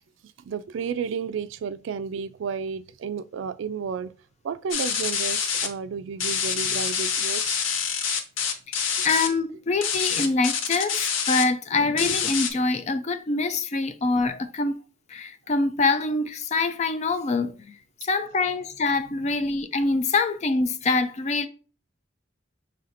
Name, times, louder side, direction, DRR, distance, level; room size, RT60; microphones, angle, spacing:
voice 1, 0.5-4.1 4.4-7.6 9.0-9.1 19.2-19.4, right 6 dB, 75° right, 0.3 m, -32 dB
sound 1, 4.7-5.7 6.2-9.3 9.8-11.4 12.0-12.5, left 7 dB, 90° left, 0.6 m, -26 dB
voice 2, 9.0-14.7 15.1-17.5 18.0-21.5, left 3 dB, 35° left, 0.4 m, -25 dB
5.6 x 3.3 x 2.5 m
head